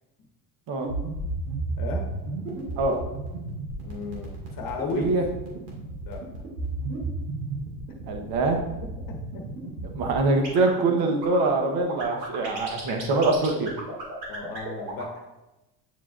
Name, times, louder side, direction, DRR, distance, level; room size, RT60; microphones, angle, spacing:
sound 1, 0.8-15.1, right 3 dB, 85° right, 2.2 m, -33 dB
voice 1, 1.8-2.1 3.8-5.1 6.1-6.3 8.5-9.5 14.3-15.3, left 4 dB, 45° left, 2 dB, 1.1 m, -35 dB
voice 2, 4.9-5.2 8.1-8.6 9.9-13.7, right 3 dB, 50° right, 4 dB, 1.1 m, -24 dB
9.3 x 4.6 x 2.5 m, 1.0 s
supercardioid pair, 90°, 50 cm